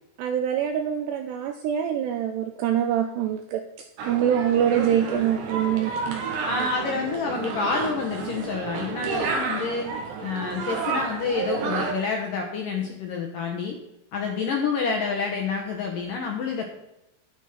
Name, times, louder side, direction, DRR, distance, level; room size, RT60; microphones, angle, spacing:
voice 1, 0.2-3.6 4.1-6.2, right 9 dB, 85° right, 7 dB, 2.4 m, -24 dB
sound 1, 4.0-11.9, right 5 dB, 65° right, 3.6 m, -30 dB
voice 2, 6.4-9.8 10.2-13.8 14.1-16.7, left 5 dB, 70° left, 1 dB, 2.1 m, -28 dB
11.5 x 9.4 x 5.9 m, 0.88 s
omnidirectional pair, 5.7 m